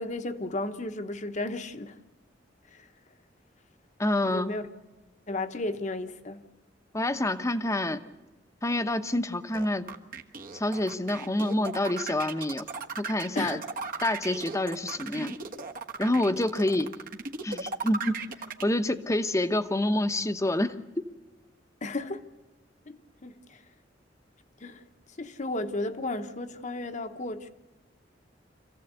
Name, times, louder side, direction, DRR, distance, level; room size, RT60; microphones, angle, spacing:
voice 1, 0.0-2.0 2.7-2.9 4.3-4.7 5.3-6.4 13.3-13.6 21.8-22.2 22.9-23.6 24.6-24.8 25.2-27.5, left 2 dB, 40° left, 1.1 m, -34 dB
voice 2, 4.0-4.5 6.9-8.0 8.6-9.9 10.5-12.7 13.0-13.6 14.0-15.4 16.0-16.9 17.4-18.2 18.6-20.7, left 1 dB, 15° left, 1.0 m, -27 dB
sound 1, 9.5-18.6, right 4 dB, 50° right, 1.4 m, -37 dB
26.5 x 15.5 x 8.1 m
head